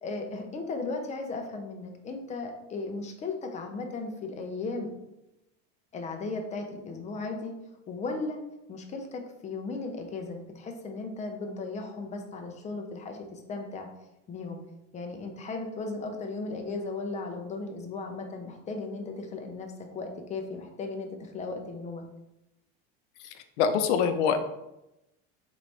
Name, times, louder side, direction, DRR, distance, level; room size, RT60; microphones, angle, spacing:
voice 1, 0.0-4.9 5.9-7.5 7.9-8.4 8.7-13.9 14.3-14.6 14.9-22.0, left 3 dB, 20° left, 4 dB, 0.5 m, -36 dB
voice 2, 23.2-24.4, left 7 dB, 85° left, 8 dB, 0.5 m, -25 dB
3.3 x 3.1 x 4.0 m, 0.91 s
supercardioid pair, 135°, 33 cm